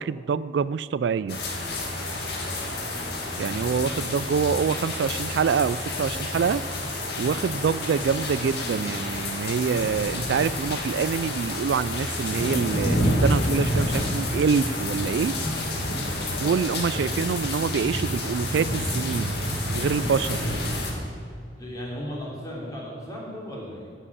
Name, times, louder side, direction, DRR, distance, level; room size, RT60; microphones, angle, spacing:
voice 1, 0.0-1.4 3.4-6.6 7.2-15.4 16.4-19.4 19.7-20.4, right 6 dB, 70° right, 16 dB, 0.3 m, -26 dB
sound 1, 1.3-20.9, left 1 dB, 65° left, 2.2 m, -29 dB
voice 2, 2.4-2.9 7.6-7.9 16.1-17.3 21.5-24.0, equal, 20° left, -4 dB, 3.5 m, -37 dB
12.5 x 7.5 x 8.4 m, 2.3 s
head